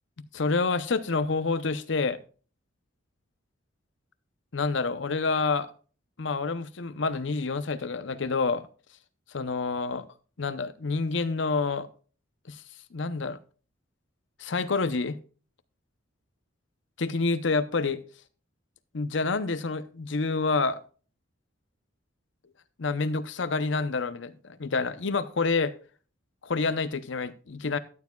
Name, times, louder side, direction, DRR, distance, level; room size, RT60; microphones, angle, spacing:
voice 1, 0.3-2.2 4.5-5.7 6.2-8.7 9.3-10.1 10.4-11.9 12.5-12.6 12.9-13.4 14.4-15.2 17.0-18.0 18.9-20.8 22.8-25.7 26.4-27.8, left 4 dB, 65° left, 0.7 m, -28 dB
13.5 x 9.5 x 2.3 m
head